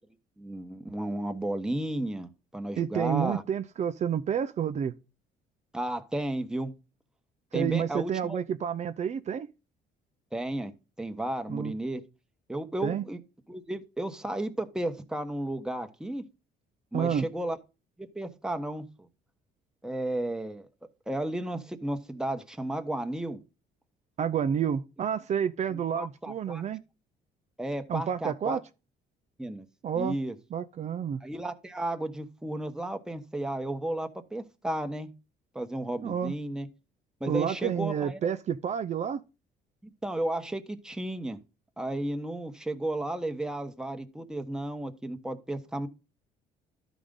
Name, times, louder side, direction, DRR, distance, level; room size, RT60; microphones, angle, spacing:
voice 1, 0.4-3.4 5.7-6.7 7.5-8.4 10.3-10.7 11.0-12.0 12.5-13.2 13.5-16.2 16.9-17.6 18.0-19.1 19.8-20.7 21.1-23.4 25.7-26.6 27.6-28.6 29.4-29.6 30.0-30.3 31.2-35.1 35.5-36.7 37.2-38.2 40.0-41.4 41.8-45.9, right 1 dB, 5° right, 1.2 m, -33 dB
voice 2, 2.8-4.9 7.5-9.5 11.5-11.7 12.8-13.0 16.9-17.2 24.2-26.8 27.9-28.6 29.8-30.2 30.5-31.2 36.0-36.3 37.3-39.2, right 8 dB, 45° right, 0.6 m, -29 dB
12.5 x 5.1 x 3.7 m
cardioid pair, 110°, 17 cm